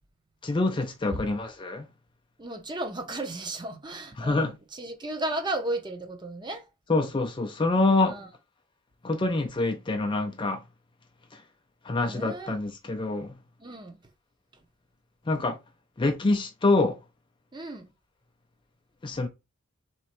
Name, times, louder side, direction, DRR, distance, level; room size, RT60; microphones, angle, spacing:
voice 1, 0.4-1.9 4.2-4.5 6.9-8.2 9.0-10.6 11.8-13.3 15.3-15.6 16.0-17.0 19.0-19.3, left 2 dB, 20° left, 0.4 m, -26 dB
voice 2, 2.4-6.6 8.0-8.3 12.0-12.5 13.6-14.0 17.5-17.9 19.1-19.2, right 1 dB, 20° right, 0.7 m, -34 dB
3.5 x 3.1 x 4.2 m
head